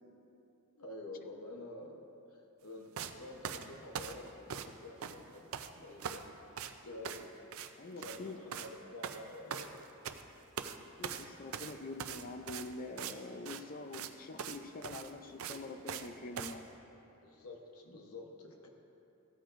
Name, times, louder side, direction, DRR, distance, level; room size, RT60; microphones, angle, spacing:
voice 1, 0.8-6.3 6.8-7.2 7.9-9.8 13.8-13.9 17.2-18.7, left 2 dB, 80° left, 1 dB, 1.0 m, -49 dB
sound 1, 3.0-3.1 3.4-4.8 5.0-5.7 6.0-6.3 6.6-6.7 7.1-7.3 7.5-7.7 8.0-8.2 8.5-8.7 9.0-10.2 10.6-10.8 11.0-13.2 13.5-13.6 13.9-14.1 14.4-14.6 14.8-16.1 16.4-16.6, right 7 dB, 75° right, 0.5 m, -41 dB
voice 2, 7.8-8.4 11.0-16.7, left 2 dB, 40° left, 7 dB, 0.5 m, -45 dB
14.5 x 13.5 x 2.6 m, 3.0 s
head